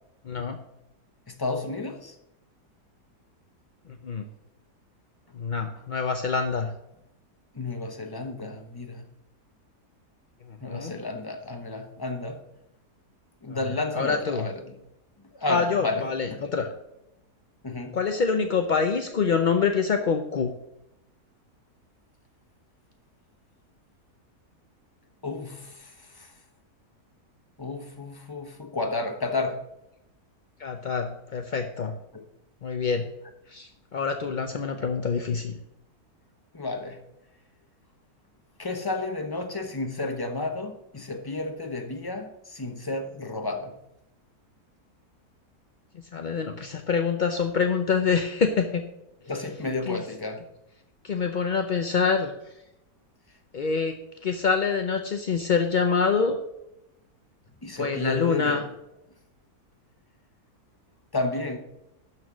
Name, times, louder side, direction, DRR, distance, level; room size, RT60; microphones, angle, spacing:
voice 1, 0.2-0.6 4.0-4.2 5.3-6.7 10.5-11.0 13.5-13.6 13.9-14.5 15.5-16.7 17.9-20.5 30.6-31.9 32.6-33.1 33.5-35.6 45.9-48.8 49.9-50.0 51.0-52.3 53.5-53.9 54.2-56.4 57.8-58.6, left 5 dB, 55° left, 6 dB, 0.5 m, -26 dB
voice 2, 1.3-2.1 7.5-9.1 10.6-12.4 13.4-14.7 15.3-16.4 17.6-18.0 25.2-26.3 27.6-29.7 36.5-37.0 38.6-43.8 49.2-50.4 57.6-58.6 61.1-61.6, left 2 dB, 15° left, 4 dB, 1.0 m, -32 dB
12.5 x 4.5 x 6.1 m, 0.86 s
omnidirectional pair, 1.7 m